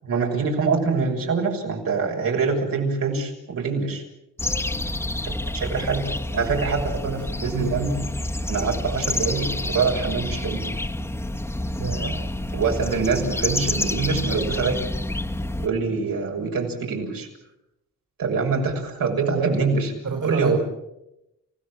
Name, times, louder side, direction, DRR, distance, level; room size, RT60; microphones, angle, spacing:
voice 1, 0.0-4.0 5.2-6.0 6.3-8.0 8.5-10.6 12.5-14.8 15.6-17.3 18.2-19.9 20.2-20.6, right 5 dB, 85° right, 0 dB, 6.6 m, -24 dB
sound 1, 4.4-15.7, left 1 dB, 5° left, 1.3 m, -28 dB
voice 2, 11.8-12.2 20.0-20.6, right 4 dB, 65° right, 2 dB, 4.6 m, -27 dB
30.0 x 16.5 x 7.6 m, 0.88 s
cardioid pair, 90°, 33 cm